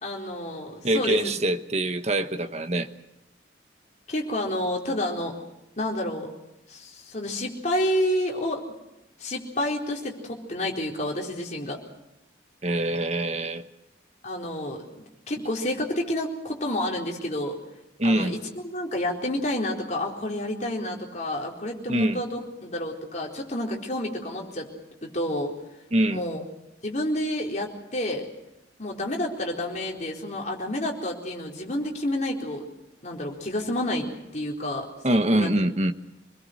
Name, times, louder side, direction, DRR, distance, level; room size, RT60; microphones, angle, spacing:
voice 1, 0.0-1.3 4.1-5.4 5.8-6.3 6.7-8.6 9.2-11.8 14.2-14.8 15.3-17.6 18.0-18.4 18.6-24.7 25.0-25.5 26.1-26.4 26.8-28.3 28.8-32.6 33.0-35.5, left 1 dB, 40° left, 0 dB, 4.3 m, -29 dB
voice 2, 0.8-2.9 12.6-13.6 18.0-18.3 21.9-22.2 25.9-26.2 35.0-35.9, right 1 dB, 35° right, 8 dB, 1.3 m, -24 dB
26.5 x 21.0 x 6.5 m, 0.92 s
head